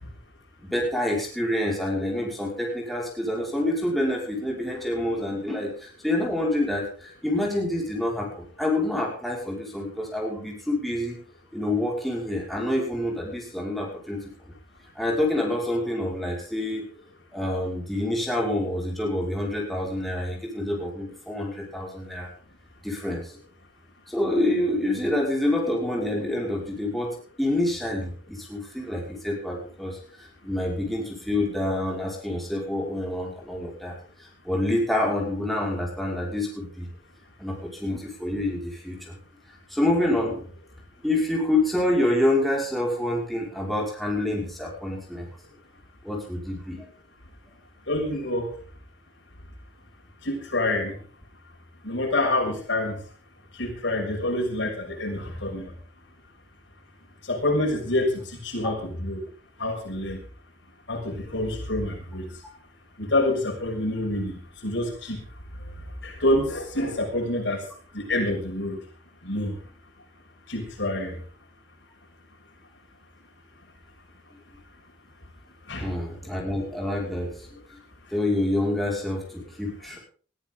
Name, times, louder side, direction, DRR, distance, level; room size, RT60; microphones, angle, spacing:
voice 1, 0.6-11.2 11.5-14.2 15.0-16.8 17.3-22.3 22.8-23.4 24.1-36.9 37.4-39.2 39.7-40.4 41.0-45.3 46.0-46.9 58.6-58.7 75.8-77.3 78.1-80.0, left 1 dB, ahead, -3 dB, 5.3 m, -27 dB
voice 2, 47.9-48.5 50.2-50.9 51.8-53.0 53.6-55.6 57.3-58.1 58.4-59.2 59.6-60.2 60.9-62.2 63.0-64.3 64.6-65.2 66.0-67.6 67.9-68.8 69.2-69.5 70.5-71.2 75.7-75.9, left 1 dB, 80° left, 1 dB, 6.4 m, -26 dB
20.5 x 14.0 x 3.9 m, 0.42 s
head